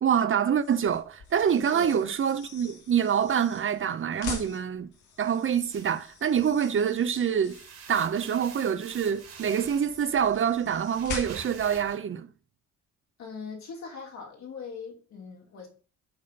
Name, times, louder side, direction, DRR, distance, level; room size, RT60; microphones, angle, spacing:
voice 1, 0.0-4.9 5.2-7.6 7.9-12.3, right 8 dB, 45° right, 0.7 m, -26 dB
sound 1, 0.5-11.7, left 5 dB, 85° left, 2.0 m, -44 dB
voice 2, 1.7-2.1 13.2-15.7, left 5 dB, 65° left, 3.3 m, -41 dB
sound 2, 5.7-6.9 7.3-12.0, right 7 dB, 60° right, 2.2 m, -47 dB
8.6 x 4.3 x 5.3 m
cardioid pair, 90°, 30 cm